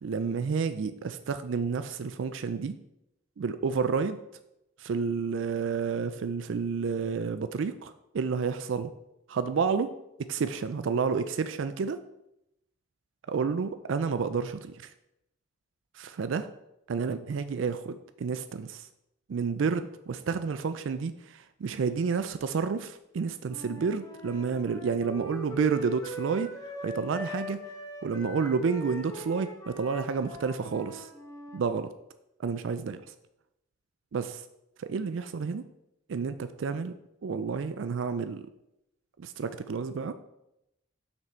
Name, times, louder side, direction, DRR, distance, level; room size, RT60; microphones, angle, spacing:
voice 1, 0.0-2.7 3.4-4.2 4.8-8.9 9.3-9.9 10.2-12.0 13.3-14.9 15.9-16.5 16.9-18.9 19.3-26.5 26.8-27.6 28.0-31.1 31.5-31.9 32.4-33.0 34.1-34.4 34.8-35.7 36.1-36.9 37.2-38.5 39.2-40.2, right 5 dB, 70° right, 11 dB, 0.4 m, -30 dB
Wind instrument woodwind instrument, 23.5-31.6, right 1 dB, 15° left, 0.9 m, -41 dB
6.2 x 6.0 x 4.4 m, 0.86 s
head